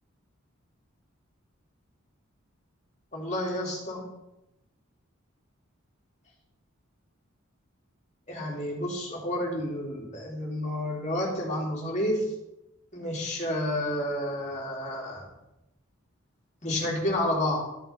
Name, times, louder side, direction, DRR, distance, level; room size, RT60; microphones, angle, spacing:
voice 1, 3.1-4.1 8.3-12.3 12.9-15.3 16.6-17.7, left 1 dB, 35° left, -3 dB, 3.1 m, -30 dB
13.0 x 5.8 x 5.2 m, 0.91 s
head